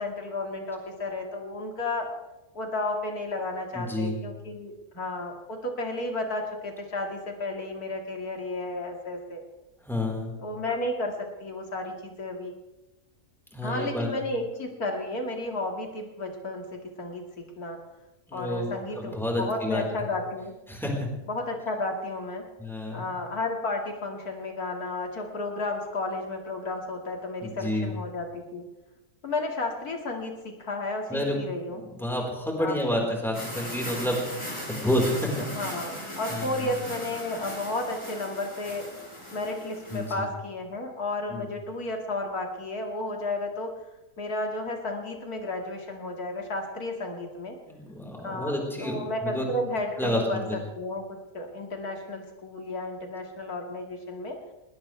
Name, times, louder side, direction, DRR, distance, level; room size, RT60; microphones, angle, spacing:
voice 1, 0.0-2.1 2.5-9.4 10.4-12.5 13.6-17.8 18.3-20.5 21.3-22.4 22.9-28.6 29.2-31.8 32.6-33.1 35.5-38.9 39.3-43.7 44.2-47.6 48.2-48.5 48.8-50.4 50.8-51.0 51.3-54.4, left 2 dB, 80° left, 2 dB, 2.7 m, -32 dB
voice 2, 3.7-4.1 9.9-10.3 13.5-14.1 18.3-18.7 19.0-19.8 20.7-21.1 22.6-23.1 27.4-27.9 31.1-31.4 31.8-34.2 34.6-35.3 35.6-35.7 36.3-36.7 39.9-40.1 41.3-41.5 47.7-49.5 50.0-50.6, left 1 dB, ahead, -1 dB, 4.3 m, -29 dB
sound 1, 33.3-40.1, equal, 20° left, 5.7 m, -38 dB
20.5 x 19.5 x 3.4 m, 1.0 s
omnidirectional pair, 1.6 m